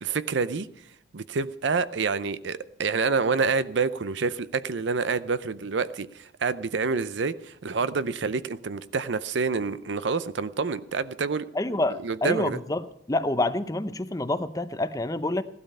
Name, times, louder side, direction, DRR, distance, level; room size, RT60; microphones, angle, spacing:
voice 1, 0.0-0.7 1.1-11.5 12.0-12.6, right 4 dB, 65° right, 15 dB, 0.6 m, -27 dB
voice 2, 11.5-15.4, left 2 dB, 20° left, 12 dB, 0.6 m, -27 dB
16.5 x 12.5 x 5.5 m, 0.73 s
head